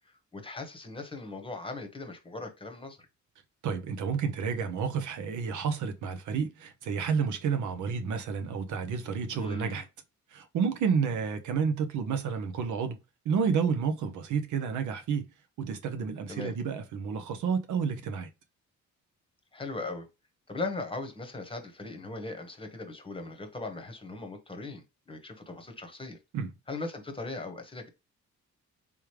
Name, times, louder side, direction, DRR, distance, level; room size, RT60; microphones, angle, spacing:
voice 1, 0.0-3.1 9.3-9.8 16.3-16.5 19.5-20.1 20.5-26.2 26.7-27.9, left 2 dB, 15° left, 1.0 m, -39 dB
voice 2, 3.6-9.9 10.3-13.0 13.2-15.3 15.6-18.3 26.3-26.5, right 6 dB, 75° right, 0.8 m, -30 dB
3.6 x 3.2 x 3.2 m
cardioid pair, 90°, 30 cm